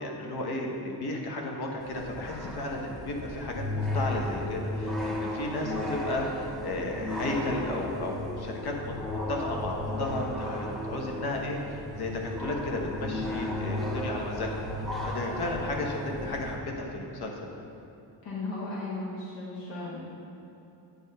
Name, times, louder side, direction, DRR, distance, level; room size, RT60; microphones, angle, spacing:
voice 1, 0.0-3.6 3.9-8.9 9.3-12.1 12.4-14.6 15.0-17.5, left 2 dB, 55° left, 0 dB, 1.1 m, -33 dB
sound 1, 1.8-16.6, left 1 dB, ahead, 0.8 m, -34 dB
voice 2, 18.2-20.0, left 2 dB, 70° left, -6 dB, 1.5 m, -35 dB
8.5 x 3.5 x 5.5 m, 2.8 s
cardioid pair, 130°, 45 cm